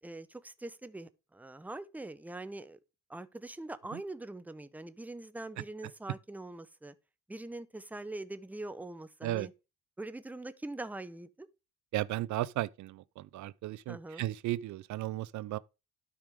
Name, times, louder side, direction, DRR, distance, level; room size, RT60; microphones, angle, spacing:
voice 1, 0.0-2.8 3.1-6.9 7.3-9.5 10.0-11.5 13.9-14.3, right 2 dB, 5° right, 0.6 m, -43 dB
voice 2, 11.9-15.6, right 15 dB, 70° right, 0.5 m, -35 dB
12.5 x 5.1 x 3.5 m
cardioid pair, 90°, 30 cm